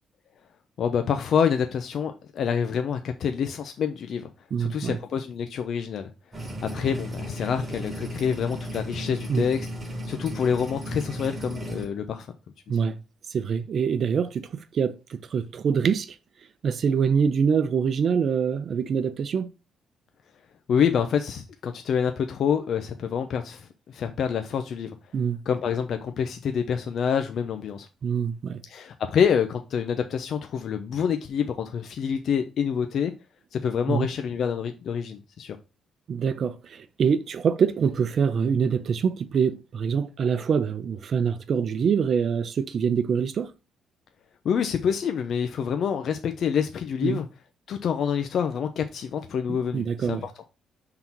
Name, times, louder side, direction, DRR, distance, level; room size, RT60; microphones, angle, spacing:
voice 1, 0.8-4.3 4.6-6.1 6.6-9.7 10.1-12.3 20.7-24.9 25.5-27.9 28.7-33.1 33.5-35.6 44.4-47.3 47.7-50.3, left 7 dB, 65° left, 0.7 m, -27 dB
voice 2, 4.5-5.0 9.3-9.5 12.7-13.0 13.3-16.2 16.6-19.5 25.1-25.4 28.0-28.6 33.9-34.1 36.1-43.5 47.0-47.2 49.5-50.2, right 6 dB, 55° right, 0.7 m, -25 dB
sound 1, 6.3-11.8, equal, 25° right, 2.8 m, -35 dB
5.6 x 3.9 x 4.5 m
cardioid pair, 90°, 0 cm